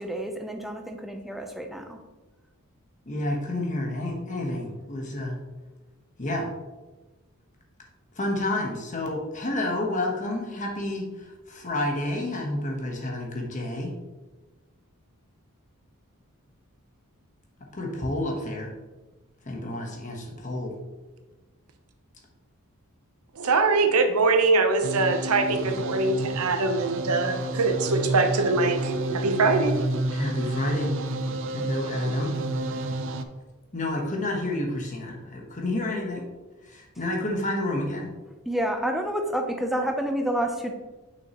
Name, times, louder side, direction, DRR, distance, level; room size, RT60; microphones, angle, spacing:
voice 1, 0.0-2.0 38.5-40.7, right 1 dB, ahead, 4 dB, 0.5 m, -29 dB
voice 2, 3.1-5.3 6.2-6.5 8.2-14.0 17.7-18.7 19.4-20.8 30.1-31.0 31.5-32.4 33.7-36.3 36.6-38.1, left 1 dB, 35° left, 0 dB, 1.1 m, -30 dB
voice 3, 23.4-29.8, right 3 dB, 80° right, 6 dB, 0.8 m, -23 dB
sound 1, 24.8-33.2, right 2 dB, 60° right, 0.5 m, -30 dB
6.3 x 5.8 x 2.9 m, 1.2 s
head